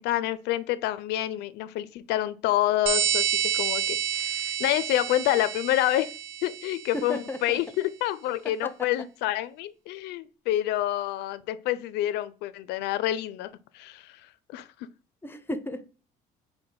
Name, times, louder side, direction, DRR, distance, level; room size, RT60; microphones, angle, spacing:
voice 1, 0.0-6.1 6.4-14.1 14.5-14.7, left 14 dB, 85° left, 0.4 m, -28 dB
sound 1, 2.9-7.1, right 9 dB, 90° right, 0.5 m, -29 dB
voice 2, 6.9-7.6 8.6-8.9 15.2-15.9, left 1 dB, 15° left, 0.6 m, -34 dB
5.4 x 2.1 x 3.8 m
cardioid pair, 110°, 17 cm